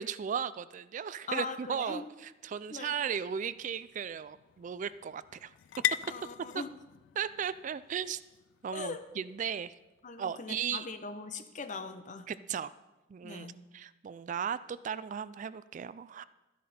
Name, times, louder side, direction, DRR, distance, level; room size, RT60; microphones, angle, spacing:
voice 1, 0.0-5.5 6.5-6.6 7.2-8.2 8.6-9.7 10.2-10.9 12.3-12.7 13.1-16.2, right 7 dB, 45° right, 16 dB, 0.3 m, -36 dB
voice 2, 1.3-2.0 2.7-2.9 6.1-6.7 8.7-9.0 10.0-12.3 13.2-13.6, left 4 dB, 45° left, 9 dB, 0.8 m, -40 dB
sound 1, 2.2-10.1, left 11 dB, 85° left, 0.3 m, -41 dB
12.5 x 10.0 x 4.3 m, 1.0 s
head